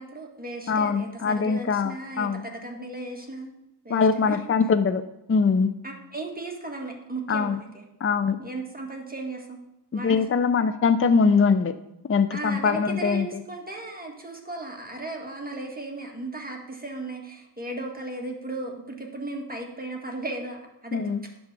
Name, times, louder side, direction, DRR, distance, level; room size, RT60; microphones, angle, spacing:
voice 1, 0.0-3.5 3.8-4.4 5.8-7.8 8.4-9.6 9.9-10.2 12.3-20.6 20.8-21.1, right 2 dB, 20° right, 0 dB, 1.8 m, -36 dB
voice 2, 0.7-2.4 3.9-5.0 5.3-5.7 7.3-7.6 8.0-8.4 9.9-11.7 12.1-13.3 20.9-21.2, left 5 dB, 35° left, 11 dB, 0.5 m, -22 dB
10.5 x 3.9 x 6.1 m, 0.86 s
cardioid pair, 60°, 41 cm